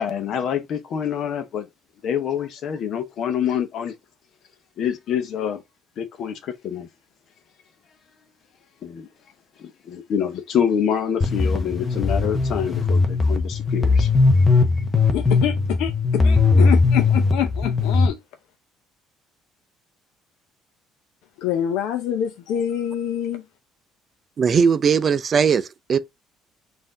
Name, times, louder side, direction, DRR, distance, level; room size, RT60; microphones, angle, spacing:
voice 1, 0.0-1.7 2.0-3.9 4.8-5.6 6.0-6.9 8.8-9.1 9.6-14.1, left 8 dB, 50° left, 0.8 m, -26 dB
sound 1, 11.2-18.1, left 4 dB, 15° left, 0.8 m, -19 dB
voice 2, 15.1-18.2 21.4-23.4, left 10 dB, 80° left, 0.6 m, -26 dB
voice 3, 24.4-26.0, right 6 dB, 30° right, 0.4 m, -19 dB
4.2 x 2.7 x 3.7 m
cardioid pair, 145°, 0 cm